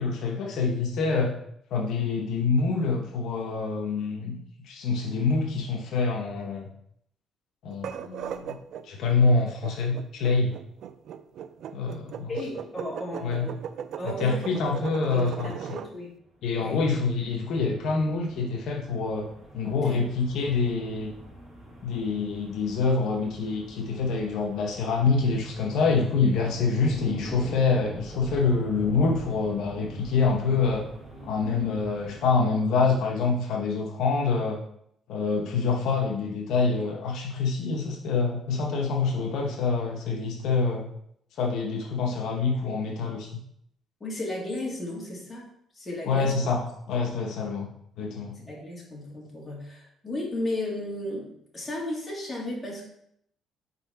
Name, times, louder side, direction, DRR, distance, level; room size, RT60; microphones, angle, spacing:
voice 1, 0.0-1.3 1.7-4.4 4.6-6.7 7.6-8.6 8.8-10.5 11.7-12.3 13.2-13.5 14.0-15.6 16.4-19.3 19.5-21.1 21.8-30.9 31.2-34.6 35.1-40.9 41.4-43.4 46.1-46.6 46.9-47.7 48.0-48.4, left 4 dB, 75° left, 0 dB, 0.9 m, -26 dB
sound 1, 7.7-15.9, right 9 dB, 65° right, 0.4 m, -37 dB
voice 2, 12.3-13.6 14.0-14.7 15.1-16.1 16.6-16.8 19.6-20.0 44.0-45.5 45.7-46.3 48.4-52.8, left 1 dB, 20° left, -3 dB, 2.2 m, -34 dB
sound 2, 16.5-32.4, right 1 dB, 5° right, 2.4 m, -44 dB
4.5 x 4.1 x 5.4 m, 0.72 s
cardioid pair, 115°, 0 cm